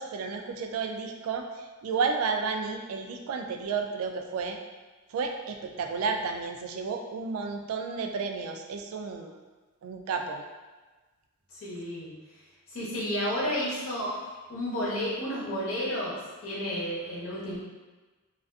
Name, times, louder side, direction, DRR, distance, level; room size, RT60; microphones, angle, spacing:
voice 1, 0.0-4.6 5.1-9.3 9.8-10.4, right 5 dB, 80° right, 8 dB, 0.3 m, -32 dB
voice 2, 11.5-12.1 12.7-14.2 14.5-17.6, equal, 80° left, -7 dB, 0.8 m, -31 dB
2.5 x 2.3 x 2.3 m, 1.3 s
head